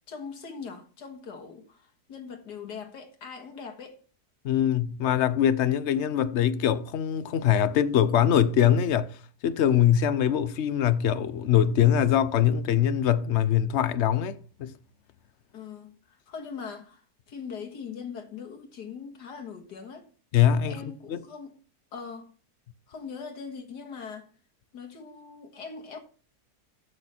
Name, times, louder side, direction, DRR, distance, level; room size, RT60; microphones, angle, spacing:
voice 1, 0.1-4.0 15.5-20.1 20.7-21.6 21.9-22.3 22.9-24.3 24.7-26.0, left 6 dB, 80° left, 2.2 m, -41 dB
voice 2, 4.4-9.2 9.4-14.7 20.3-20.8 21.1-21.2, left 10 dB, 60° left, 0.8 m, -23 dB
14.0 x 6.5 x 4.3 m
omnidirectional pair, 1.7 m